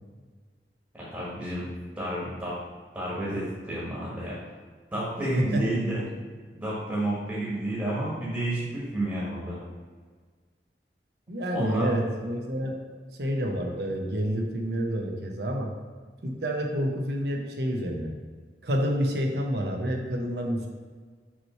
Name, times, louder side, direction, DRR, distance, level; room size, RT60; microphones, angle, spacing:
voice 1, 0.9-1.7 2.0-2.6 2.9-4.4 4.9-6.0 6.6-9.6 11.5-11.9, right 1 dB, 15° right, -7 dB, 1.3 m, -30 dB
voice 2, 11.3-12.8 13.2-15.7 16.2-18.1 18.6-20.7, equal, 70° right, 2 dB, 0.9 m, -28 dB
5.9 x 3.1 x 5.6 m, 1.6 s
head